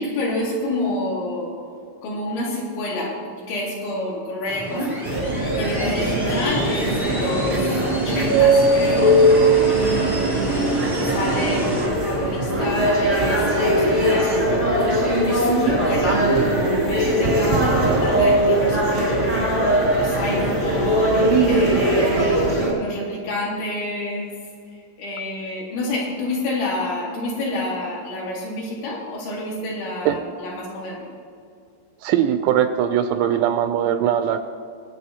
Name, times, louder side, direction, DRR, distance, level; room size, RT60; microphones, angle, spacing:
voice 1, 0.0-1.5 2.0-9.2 9.7-19.6 19.9-24.3 25.0-31.0, left 1 dB, 70° left, -4 dB, 4.5 m, -29 dB
sound 1, 4.5-11.9, right 1 dB, 20° left, 0.9 m, -27 dB
sound 2, 5.0-22.7, right 1 dB, 35° right, 0.8 m, -20 dB
voice 2, 32.0-34.4, right 10 dB, 85° right, 8 dB, 2.7 m, -20 dB
21.0 x 8.7 x 2.8 m, 2.3 s
omnidirectional pair, 5.5 m